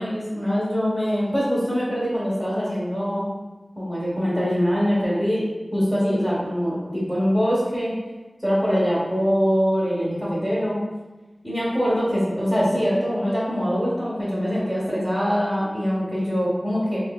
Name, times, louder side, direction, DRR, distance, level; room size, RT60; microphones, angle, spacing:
voice 1, 0.0-3.3 3.8-5.4 5.7-7.9 8.4-10.8 11.4-17.0, equal, ahead, -10 dB, 1.0 m, -23 dB
3.3 x 2.7 x 2.3 m, 1.2 s
wide cardioid pair, 50°, 0 cm